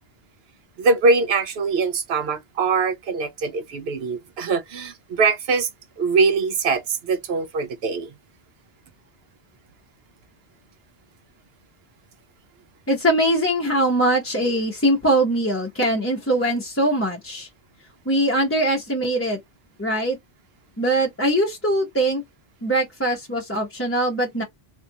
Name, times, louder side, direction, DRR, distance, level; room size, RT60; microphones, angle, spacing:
voice 1, 0.8-5.7 6.0-8.1, right 4 dB, 70° right, 0.9 m, -22 dB
voice 2, 12.9-17.5 18.1-19.4 19.8-20.2 20.8-22.2 22.6-24.4, right 1 dB, 15° left, 0.7 m, -22 dB
3.5 x 2.5 x 2.7 m
omnidirectional pair, 1.1 m